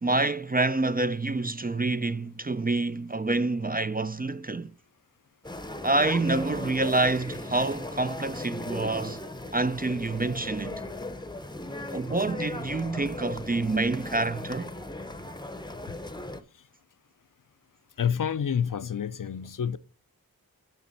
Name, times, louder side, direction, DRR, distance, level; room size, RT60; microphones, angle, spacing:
voice 1, 0.0-4.7 5.8-9.2 9.5-10.8 11.9-14.7, right 2 dB, 25° right, 0.4 m, -27 dB
sound 1, 5.4-16.4, left 2 dB, 10° left, 0.7 m, -37 dB
voice 2, 18.0-19.8, left 8 dB, 60° left, 0.5 m, -28 dB
7.2 x 5.9 x 4.0 m
wide cardioid pair, 55°, 36 cm